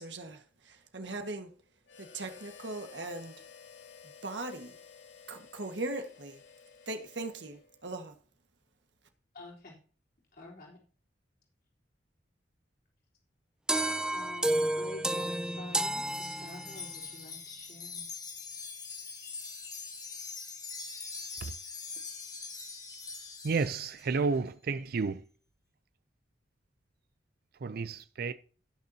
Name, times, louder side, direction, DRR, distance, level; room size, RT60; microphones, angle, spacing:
voice 1, 0.0-1.5 2.0-3.5 4.2-4.8 5.3-6.4 6.9-8.1, right 2 dB, 70° right, 1.6 m, -39 dB
Harmonica, 1.9-7.9, left 6 dB, 80° left, 1.6 m, -54 dB
voice 2, 9.3-9.8 10.3-10.8 14.1-18.1, left 2 dB, 55° left, 3.7 m, -48 dB
sound 1, 13.7-17.0, right 1 dB, 5° right, 0.5 m, -31 dB
Wind chime, 15.9-24.1, left 4 dB, 20° left, 1.3 m, -43 dB
voice 3, 23.4-25.2 27.6-28.3, right 4 dB, 55° right, 0.5 m, -31 dB
17.5 x 6.8 x 2.8 m
head